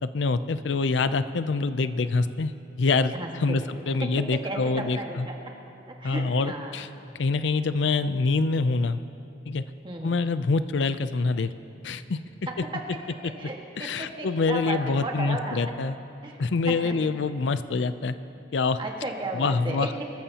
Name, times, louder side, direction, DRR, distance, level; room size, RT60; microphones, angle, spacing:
voice 1, 0.0-2.5 2.8-5.3 6.0-6.9 7.2-9.0 9.5-9.6 10.0-11.5 11.8-12.2 13.8-16.0 16.4-18.1 18.5-18.8 19.3-19.9, left 4 dB, 70° left, 12 dB, 0.5 m, -25 dB
voice 2, 3.1-3.7 4.4-5.4 6.0-6.7 9.8-10.2 12.5-12.6 13.2-15.6 16.2-16.4 16.7-16.9 18.8-20.0, right 2 dB, 25° right, 0 dB, 1.7 m, -34 dB
25.0 x 14.0 x 2.9 m, 2.7 s
head